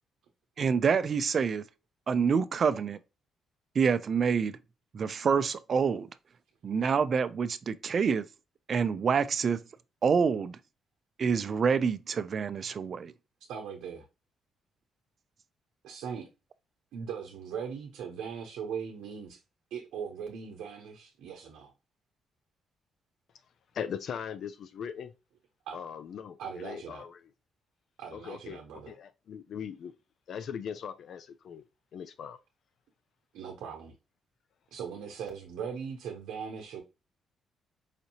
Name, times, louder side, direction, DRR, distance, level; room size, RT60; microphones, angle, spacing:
voice 1, 0.6-1.6 2.1-3.0 3.8-4.6 4.9-6.1 6.6-8.3 8.7-9.6 10.0-10.6 11.2-13.1, right 6 dB, 50° right, 0.4 m, -27 dB
voice 2, 13.5-14.1 15.8-16.3 16.9-19.4 19.7-21.7 25.7-25.8 26.4-27.0 28.0-28.9 33.3-33.9 34.7-36.8, right 7 dB, 85° right, 0.7 m, -39 dB
voice 3, 23.7-25.1 25.7-27.2 28.1-29.9 30.3-31.6 31.9-32.4, left 7 dB, 65° left, 0.3 m, -40 dB
5.0 x 2.6 x 2.8 m
cardioid pair, 90°, 0 cm